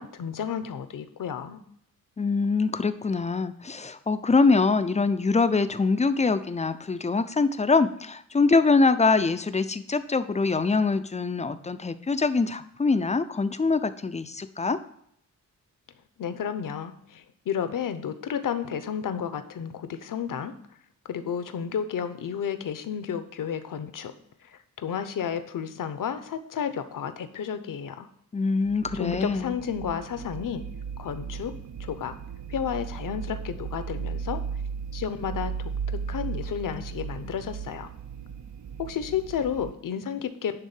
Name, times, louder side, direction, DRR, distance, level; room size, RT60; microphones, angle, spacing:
voice 1, 0.0-1.6 16.2-20.5 21.1-24.1 24.4-28.1 28.9-30.6 31.0-32.1 32.5-34.4 34.9-35.5 35.9-37.9 38.8-40.6, left 8 dB, 65° left, 11 dB, 0.9 m, -32 dB
voice 2, 2.2-14.8 28.3-29.5, left 4 dB, 20° left, 11 dB, 0.5 m, -24 dB
sound 1, 28.7-39.7, right 6 dB, 55° right, 0.6 m, -36 dB
11.0 x 3.7 x 7.3 m, 0.70 s
wide cardioid pair, 135°, 34 cm